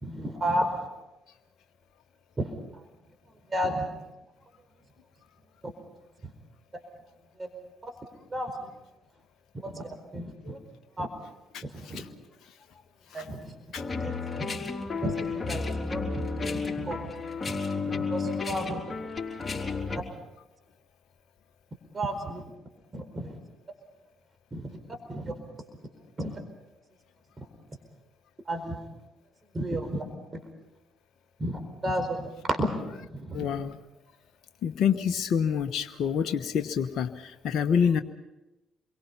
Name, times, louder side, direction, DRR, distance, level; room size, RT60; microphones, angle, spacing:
voice 1, 0.0-0.7 2.4-2.5 3.5-3.9 7.4-7.5 7.8-7.9 8.3-8.7 9.6-10.6 11.0-11.1 11.6-12.0 13.1-13.5 14.0-14.2 15.0-17.1 17.5-17.6 18.0-18.9 21.9-22.4 22.9-23.4 24.5-24.8 25.1-25.3 26.2-26.4 28.5-28.8 29.5-30.1 30.3-30.4 31.4-33.5, right 1 dB, 30° right, 5 dB, 4.5 m, -32 dB
sound 1, 13.7-20.0, left 4 dB, 25° left, 4.4 m, -32 dB
voice 2, 33.3-33.7 34.6-37.1 37.4-38.0, left 7 dB, 60° left, 7 dB, 1.1 m, -26 dB
28.0 x 23.0 x 5.6 m, 0.98 s
hypercardioid pair, 45°, 0 cm